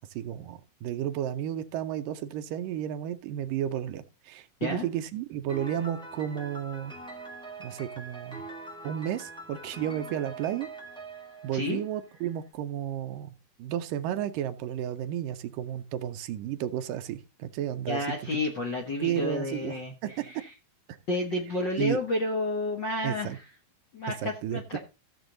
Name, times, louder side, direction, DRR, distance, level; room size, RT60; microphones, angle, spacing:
voice 1, 0.1-6.9 7.6-8.4 8.8-10.7 11.4-13.3 13.6-18.1 19.0-20.3 20.9-21.0 21.8-22.0 23.0-23.4 24.2-24.8, right 11 dB, 80° right, 2.4 m, -32 dB
Piano, 5.5-12.3, right 2 dB, ahead, 1.0 m, -43 dB
voice 2, 17.9-20.5 21.1-23.5 23.9-24.8, left 2 dB, 55° left, 1.3 m, -31 dB
15.0 x 7.1 x 3.9 m
omnidirectional pair, 4.0 m